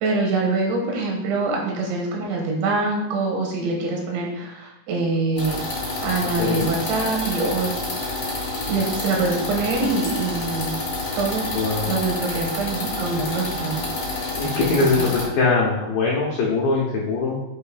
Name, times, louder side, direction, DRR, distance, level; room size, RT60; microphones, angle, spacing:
voice 1, 0.0-5.6 6.0-7.7 8.7-10.7 11.2-11.5 11.9-13.8 14.5-15.1, right 3 dB, 80° right, 0 dB, 3.5 m, -24 dB
sound 1, 5.4-15.3, left 2 dB, 60° left, 0.9 m, -28 dB
voice 2, 6.2-6.7 11.5-12.0 14.4-17.4, left 3 dB, 80° left, -4 dB, 2.0 m, -22 dB
7.8 x 2.7 x 5.1 m, 0.90 s
omnidirectional pair, 5.3 m